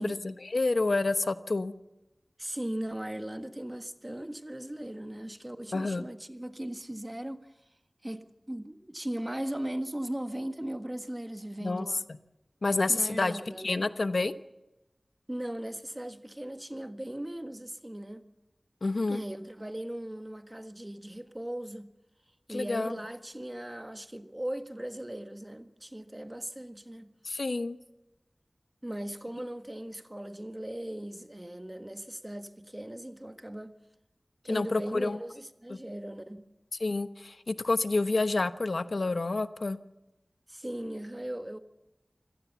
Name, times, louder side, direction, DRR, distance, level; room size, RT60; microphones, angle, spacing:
voice 1, 0.0-1.7 5.7-6.0 11.6-11.9 12.6-14.3 18.8-19.2 22.5-23.0 27.2-27.8 34.5-35.2 35.7-35.8 36.8-39.8, left 3 dB, 80° left, 1.0 m, -29 dB
voice 2, 2.4-7.5 8.0-12.1 12.9-13.8 15.3-18.3 19.1-21.9 22.5-27.1 28.8-33.7 34.4-36.4 40.5-41.6, right 1 dB, 20° right, 1.6 m, -38 dB
26.0 x 17.5 x 7.0 m
wide cardioid pair, 60°, 0 cm